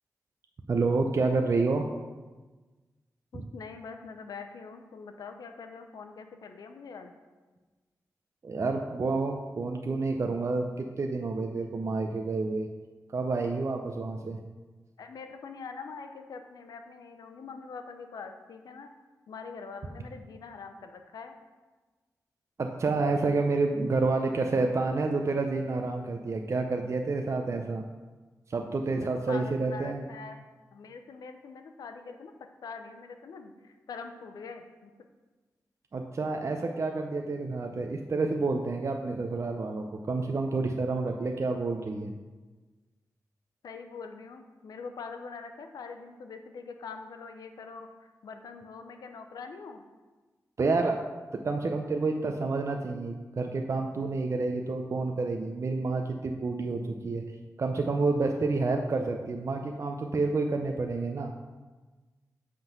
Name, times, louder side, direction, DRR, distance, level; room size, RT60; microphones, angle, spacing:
voice 1, 0.7-1.8 3.3-3.4 8.4-12.7 13.1-14.4 22.6-27.8 28.5-30.1 35.9-42.1 50.6-51.0 51.4-57.2 57.6-61.3, right 3 dB, 50° right, 3 dB, 0.6 m, -29 dB
voice 2, 3.3-7.1 15.0-18.9 19.3-21.3 28.8-30.4 30.7-32.3 32.6-34.9 43.6-49.8, left 5 dB, 90° left, 6 dB, 0.7 m, -44 dB
7.7 x 3.9 x 5.9 m, 1.3 s
cardioid pair, 70°, 6 cm